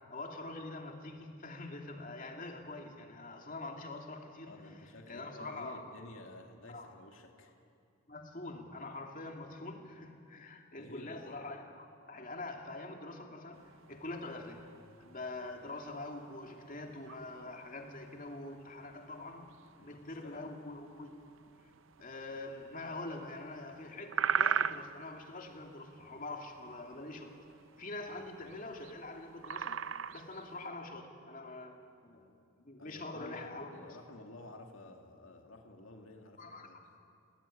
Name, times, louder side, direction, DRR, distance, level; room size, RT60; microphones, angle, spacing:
voice 1, 0.1-4.8 5.1-5.9 6.7-6.9 8.1-14.7 15.0-19.5 19.8-21.2 22.0-27.3 27.8-29.8 30.1-31.8 32.0-32.3 32.6-33.7 36.4-36.7, left 2 dB, 40° left, 2 dB, 2.6 m, -44 dB
voice 2, 4.5-7.5 10.8-11.2 19.8-20.5 28.1-28.3 32.8-36.8, left 1 dB, 65° left, 2 dB, 2.5 m, -52 dB
sound 1, 13.5-30.7, right 7 dB, 60° right, 0.6 m, -41 dB
28.5 x 19.0 x 10.0 m, 2.4 s
head